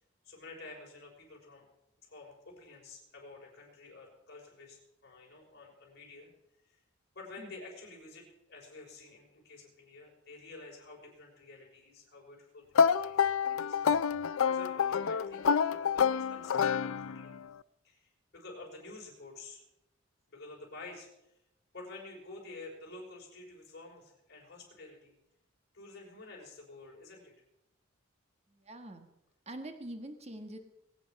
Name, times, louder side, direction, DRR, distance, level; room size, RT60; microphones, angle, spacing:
voice 1, 0.2-1.6 2.0-6.3 6.6-6.8 7.1-14.1 14.4-17.4 17.8-19.6 20.3-21.1 21.7-25.1 25.7-27.3, left 3 dB, 55° left, -2 dB, 5.7 m, -50 dB
sound 1, 12.7-17.4, left 6 dB, 85° left, 0.5 m, -28 dB
voice 2, 28.5-29.1 29.4-30.6, right 1 dB, 30° right, 6 dB, 1.5 m, -44 dB
22.0 x 9.2 x 5.4 m, 0.86 s
head